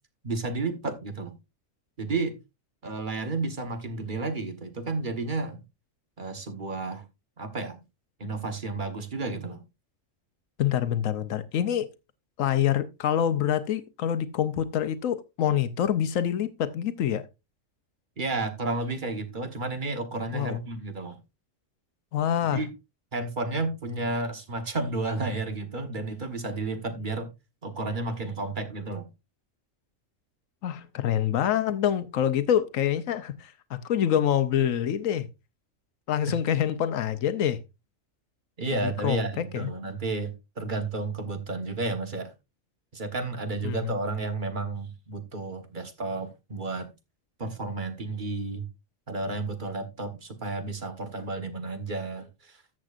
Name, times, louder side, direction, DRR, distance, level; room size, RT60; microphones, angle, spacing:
voice 1, 0.2-1.4 2.0-2.4 2.8-5.6 6.2-7.1 7.4-7.8 8.2-9.6 18.2-21.2 22.5-22.7 23.1-27.3 27.6-29.1 38.6-42.3 42.9-46.9 47.4-48.7 49.1-52.6, right 3 dB, 40° right, 1.4 m, -32 dB
voice 2, 10.6-11.9 12.4-17.3 20.3-20.6 22.1-22.6 30.6-35.3 36.1-37.6 38.8-39.7 43.6-43.9, left 10 dB, 90° left, 1.2 m, -26 dB
14.0 x 7.5 x 2.5 m
omnidirectional pair, 1.3 m